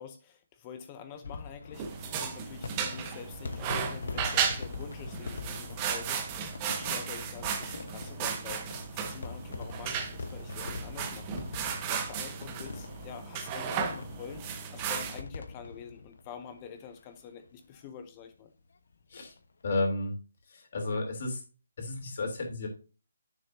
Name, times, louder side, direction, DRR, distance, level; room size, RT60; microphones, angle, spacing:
voice 1, 0.0-18.5, left 7 dB, 20° left, 8 dB, 0.7 m, -47 dB
sound 1, 1.1-17.1 17.5-17.6 17.7-17.8 19.1-19.4, left 3 dB, 65° left, 1.0 m, -43 dB
sound 2, 1.8-15.2, right 7 dB, 20° right, 0.9 m, -35 dB
voice 2, 19.6-20.1 20.5-21.4 21.8-22.7, left 2 dB, 50° left, 2 dB, 3.2 m, -32 dB
9.4 x 7.0 x 2.7 m, 0.34 s
hypercardioid pair, 170°, 0 cm